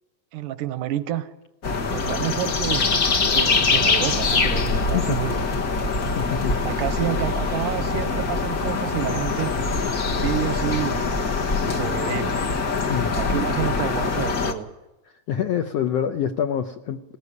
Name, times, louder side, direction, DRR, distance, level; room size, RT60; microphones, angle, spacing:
voice 1, 0.3-1.3 1.9-2.9 3.3-5.4 6.6-9.5 10.1-11.2 11.6-12.4 13.2-14.7, right 12 dB, 90° right, 12 dB, 2.5 m, -29 dB
sound 1, 1.6-14.5, left 4 dB, 45° left, 1.2 m, -23 dB
voice 2, 6.2-6.6 12.9-13.1 15.3-17.2, left 9 dB, 70° left, 5 dB, 1.6 m, -26 dB
19.0 x 15.0 x 9.7 m, 0.99 s
omnidirectional pair, 3.7 m